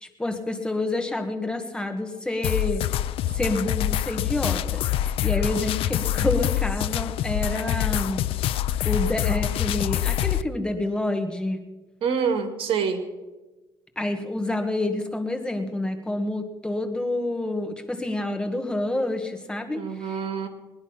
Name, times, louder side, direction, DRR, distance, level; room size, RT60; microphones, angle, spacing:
voice 1, 0.0-2.8 3.3-8.2 8.8-11.6 14.0-20.2, left 1 dB, 10° left, 5 dB, 1.5 m, -28 dB
sound 1, 2.4-10.4, left 12 dB, 80° left, 0.4 m, -25 dB
voice 2, 12.0-13.1 19.7-20.5, right 6 dB, 70° right, 8 dB, 1.9 m, -26 dB
20.5 x 10.5 x 5.8 m, 1.2 s
cardioid pair, 130°, 9 cm